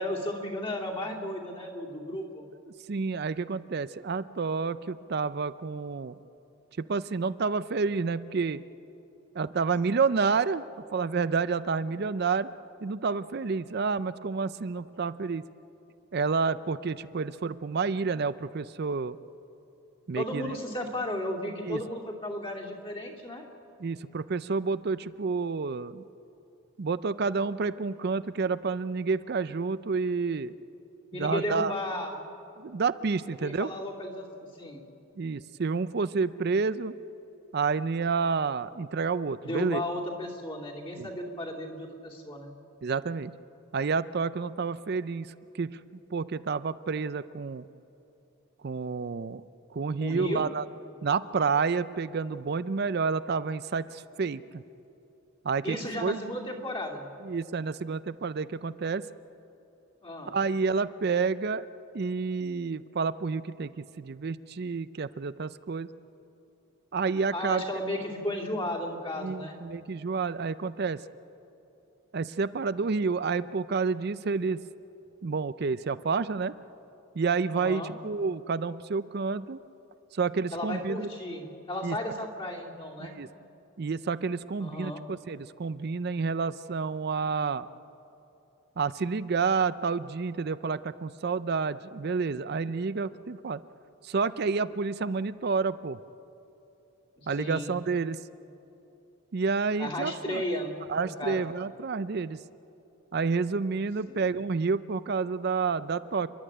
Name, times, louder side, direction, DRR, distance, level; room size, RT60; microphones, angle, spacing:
voice 1, 0.0-2.5 20.1-23.4 31.1-32.1 33.4-34.8 39.4-42.5 50.0-50.5 55.6-57.1 60.0-60.3 67.3-69.6 77.5-77.9 80.5-83.2 84.6-85.0 97.2-97.7 99.8-101.5 104.1-104.3, left 1 dB, 25° left, -1 dB, 2.6 m, -34 dB
voice 2, 2.9-6.1 6.8-8.6 9.3-10.6 10.9-12.5 12.8-15.4 16.1-19.2 20.1-20.6 21.6-21.8 23.8-26.0 26.8-30.5 31.1-31.7 32.6-33.7 35.2-37.0 37.5-39.8 41.0-41.1 42.8-43.3 43.7-45.8 46.1-47.6 48.6-49.4 49.7-50.7 51.0-54.6 55.4-56.2 57.2-59.0 60.3-61.7 61.9-65.9 66.9-67.6 69.2-71.0 72.1-74.6 75.2-76.5 77.1-79.6 80.1-81.1 81.8-82.0 83.0-83.3 83.8-87.7 88.8-93.6 94.0-96.0 97.3-98.2 99.3-100.4 100.9-102.4 103.1-106.3, right 4 dB, 50° right, 15 dB, 0.4 m, -29 dB
30.0 x 11.5 x 9.9 m, 2.9 s
head